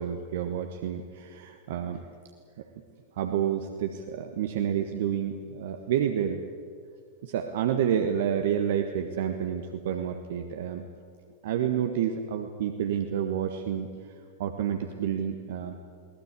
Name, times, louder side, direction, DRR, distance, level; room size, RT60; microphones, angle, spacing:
voice 1, 0.0-2.1 2.6-2.7 3.2-6.4 7.2-10.9 11.4-13.9 14.4-15.8, right 9 dB, 55° right, 6 dB, 1.4 m, -29 dB
22.5 x 18.5 x 8.3 m, 2.1 s
figure-of-eight pair, 90°, 0 cm